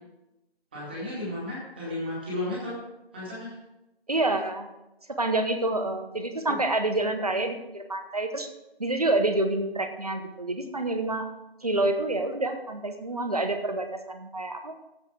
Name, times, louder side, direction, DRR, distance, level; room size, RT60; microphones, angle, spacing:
voice 1, 0.7-2.8 3.1-3.5 6.4-6.6, left 1 dB, 10° right, -7 dB, 2.1 m, -33 dB
voice 2, 4.1-4.7 5.2-8.5 8.8-11.3 11.6-14.8, right 2 dB, 40° right, 7 dB, 1.0 m, -28 dB
15.0 x 5.3 x 4.8 m, 0.93 s
figure-of-eight pair, 165°, 31 cm